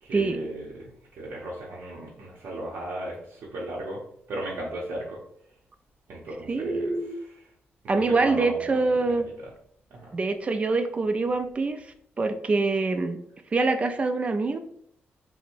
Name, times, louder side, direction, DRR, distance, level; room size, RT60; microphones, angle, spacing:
voice 1, 0.0-4.0 4.3-5.2 6.1-6.9 7.2-7.3 7.9-9.5 9.9-10.1, right 1 dB, 75° right, -4 dB, 0.7 m, -36 dB
voice 2, 6.5-7.1 7.9-9.3 10.1-11.9 12.2-13.2 13.5-14.6, right 3 dB, 30° right, 8 dB, 0.4 m, -25 dB
4.4 x 2.1 x 2.6 m, 0.68 s
cardioid pair, 110°, 4 cm